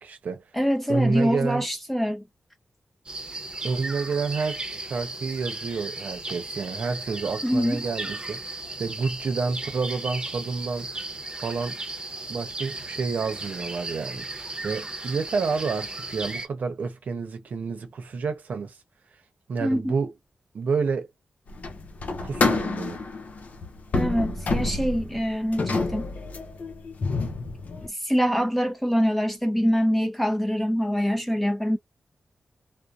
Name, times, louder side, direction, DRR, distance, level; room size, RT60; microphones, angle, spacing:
voice 1, 0.0-0.4 0.9-1.6 3.6-10.9 11.4-11.8 12.3-18.8 19.5-20.1 20.5-21.1 22.2-23.0, right 4 dB, 75° right, 0.7 m, -29 dB
voice 2, 0.5-2.2 7.4-7.8 19.6-19.9 23.9-26.1 27.8-31.8, equal, 5° left, 0.7 m, -24 dB
sound 1, 3.1-16.5, right 2 dB, 35° right, 0.8 m, -36 dB
sound 2, 21.5-27.9, left 3 dB, 65° left, 0.6 m, -28 dB
2.6 x 2.1 x 2.4 m
cardioid pair, 65°, 3 cm